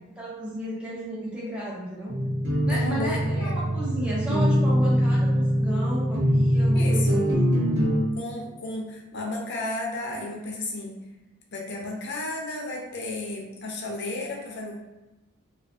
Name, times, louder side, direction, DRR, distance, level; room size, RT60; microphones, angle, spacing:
voice 1, 0.2-2.1 2.6-7.3, equal, 5° right, -6 dB, 0.4 m, -33 dB
sound 1, 2.1-8.0, equal, 55° right, 0.6 m, -23 dB
voice 2, 2.7-3.7 6.7-7.2 8.2-11.0 11.5-14.8, left 2 dB, 50° left, -1 dB, 0.5 m, -33 dB
2.4 x 2.3 x 2.5 m, 1.1 s
head